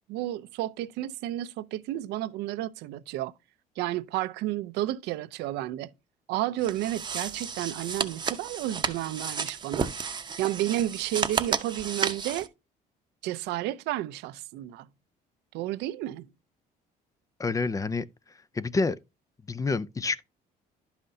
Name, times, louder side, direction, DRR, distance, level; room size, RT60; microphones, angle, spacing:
voice 1, 0.1-3.3 3.8-5.9 6.3-9.9 10.4-12.5 13.2-14.9 15.5-16.3, right 14 dB, 90° right, 0.5 m, -31 dB
sound 1, 6.6-12.5, right 5 dB, 25° right, 0.8 m, -32 dB
voice 2, 17.4-18.0 18.5-19.0 19.5-20.2, left 3 dB, 20° left, 0.4 m, -27 dB
11.5 x 5.7 x 2.7 m
cardioid pair, 110°, 17 cm